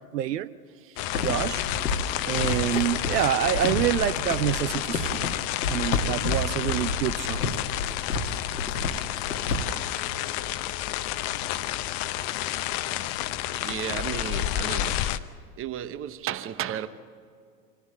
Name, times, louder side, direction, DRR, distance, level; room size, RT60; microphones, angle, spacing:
voice 1, 0.1-0.5 1.2-1.6 2.3-5.3 5.7-7.5, right 11 dB, 75° right, 15 dB, 0.7 m, -27 dB
sound 1, 1.0-15.2, left 13 dB, 45° left, 0.8 m, -30 dB
sound 2, 1.1-9.6, left 2 dB, 90° left, 1.5 m, -31 dB
voice 2, 13.5-15.2 15.6-16.9, right 10 dB, 25° right, 13 dB, 0.9 m, -34 dB
24.5 x 15.0 x 7.7 m, 2.2 s
hypercardioid pair, 95°, 49 cm